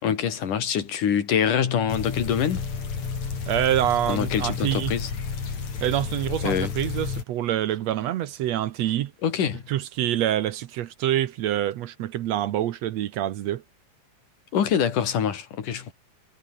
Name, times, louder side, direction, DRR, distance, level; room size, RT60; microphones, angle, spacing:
voice 1, 0.0-2.7 4.1-5.1 6.4-6.7 9.2-9.6 14.5-15.9, left 8 dB, 90° left, 4.2 m, -25 dB
sound 1, 1.9-7.2, left 5 dB, 60° left, 5.2 m, -31 dB
voice 2, 3.5-4.9 5.8-9.1 9.7-13.6, right 12 dB, 70° right, 1.9 m, -26 dB
omnidirectional pair, 3.6 m